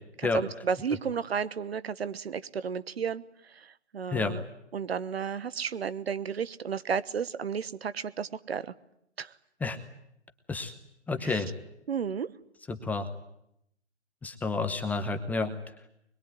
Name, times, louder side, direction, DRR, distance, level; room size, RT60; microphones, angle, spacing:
voice 1, 0.2-3.2 3.5-4.4 4.7-8.6 9.2-9.3 11.2-11.4 11.9-12.3, right 6 dB, 60° right, 14 dB, 1.2 m, -32 dB
voice 2, 11.1-11.5 12.7-13.1 14.2-15.5, left 3 dB, 5° left, 7 dB, 1.0 m, -30 dB
24.5 x 22.0 x 9.5 m, 0.77 s
figure-of-eight pair, 135°, 35 cm